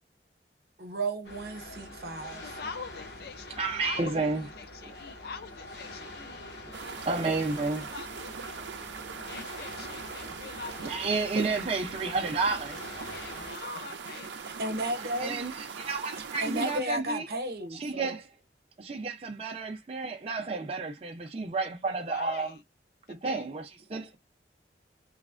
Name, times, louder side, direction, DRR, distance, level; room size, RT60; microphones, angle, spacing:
voice 1, 0.8-2.6 14.6-15.4 16.2-18.2, right 1 dB, 60° right, 0.8 m, -34 dB
sound 1, 1.2-13.5, left 1 dB, 75° left, 0.9 m, -45 dB
voice 2, 2.4-3.5 3.8-8.6 9.3-11.2 13.1-14.3 22.1-22.6 23.1-23.5, left 5 dB, 60° left, 0.4 m, -44 dB
voice 3, 3.6-4.5 4.8-4.9 6.7-6.8 7.0-7.8 8.6-8.7 10.4-10.5 10.8-12.9 15.2-15.5 15.8-17.3 17.7-18.3 18.8-22.5 23.1-24.2, right 3 dB, 35° right, 0.4 m, -31 dB
sound 2, 6.7-16.8, right 5 dB, 85° right, 0.5 m, -41 dB
3.2 x 2.1 x 2.3 m
head